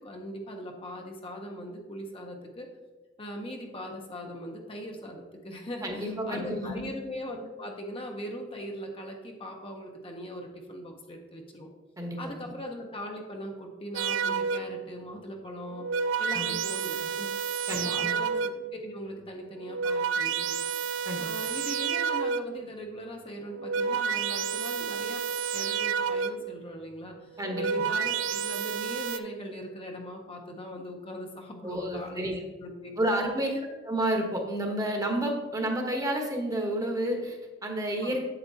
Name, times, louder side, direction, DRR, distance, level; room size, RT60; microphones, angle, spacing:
voice 1, 0.0-2.7 3.2-11.7 12.2-15.9 16.2-20.6 21.2-25.2 25.5-32.3 32.6-33.0 33.4-33.6 38.0-38.2, equal, 30° left, 1 dB, 0.8 m, -40 dB
voice 2, 5.8-6.8 12.0-12.2 16.3-16.5 17.7-18.1 21.0-21.3 27.4-27.6 31.6-32.4 33.0-38.2, right 1 dB, 20° right, 2 dB, 1.1 m, -30 dB
sound 1, 13.9-14.9 15.6-18.8 19.5-22.7 23.4-26.6 27.3-29.2, right 6 dB, 90° right, 0.4 m, -30 dB
8.1 x 8.0 x 2.8 m, 1.2 s
head